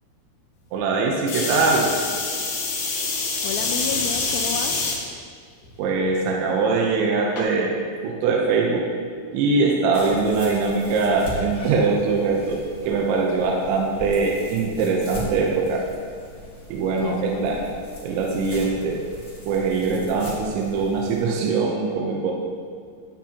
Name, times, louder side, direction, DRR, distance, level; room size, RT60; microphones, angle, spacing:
voice 1, 0.7-1.9 5.8-7.7 8.0-8.9 9.3-15.9 16.7-17.6 18.0-19.1 19.5-22.3, right 4 dB, 80° right, -1 dB, 3.1 m, -22 dB
sound 1, 1.3-5.0 5.6-6.1 7.4-7.5, left 3 dB, 60° left, 2.7 m, -26 dB
voice 2, 3.4-4.8 17.0-17.6, left 7 dB, 90° left, 4 dB, 2.4 m, -31 dB
sound 2, 9.9-21.2, equal, 35° left, 1.5 m, -39 dB
13.0 x 9.8 x 2.9 m, 2.1 s
omnidirectional pair, 5.5 m